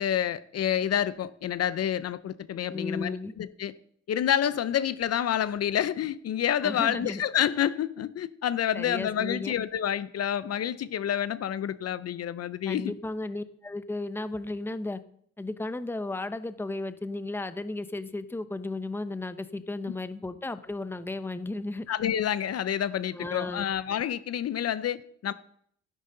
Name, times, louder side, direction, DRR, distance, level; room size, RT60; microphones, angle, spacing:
voice 1, 0.0-3.7 4.1-12.9 21.9-25.3, left 10 dB, 55° left, 0.6 m, -28 dB
voice 2, 2.7-3.3 6.6-7.2 8.7-9.5 12.7-15.0 15.4-21.9 23.1-23.7, left 2 dB, 5° left, 0.7 m, -34 dB
12.0 x 11.0 x 3.9 m
cardioid pair, 90°, 30 cm